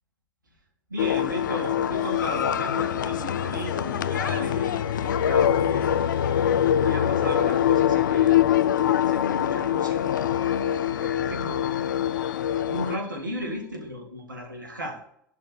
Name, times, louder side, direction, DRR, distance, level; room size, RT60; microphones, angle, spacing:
voice 1, 0.9-4.7 5.0-6.5 6.8-10.7 11.0-12.0 12.6-15.0, equal, 85° right, 2 dB, 1.9 m, -36 dB
sound 1, 1.0-13.0, left 10 dB, 80° left, 0.4 m, -24 dB
sound 2, 1.2-13.7, left 6 dB, 55° left, 1.4 m, -43 dB
11.0 x 4.3 x 6.5 m, 0.71 s
figure-of-eight pair, 70°, 10 cm